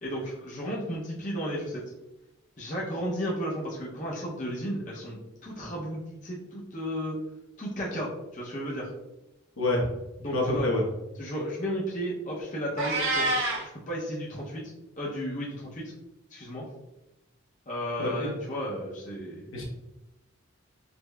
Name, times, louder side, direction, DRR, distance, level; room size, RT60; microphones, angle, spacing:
voice 1, 0.0-1.8 2.6-7.2 7.6-8.9 10.2-10.7 11.2-13.3 13.6-14.6 15.0-15.9 16.3-16.7 17.7-19.5, equal, 35° left, -5 dB, 0.6 m, -33 dB
voice 2, 9.6-9.9 10.3-10.8 18.0-18.3 19.5-19.6, left 1 dB, 80° left, -2 dB, 0.8 m, -27 dB
Meow, 12.8-13.6, right 2 dB, 70° right, 0.8 m, -26 dB
5.0 x 2.0 x 2.2 m, 0.94 s
head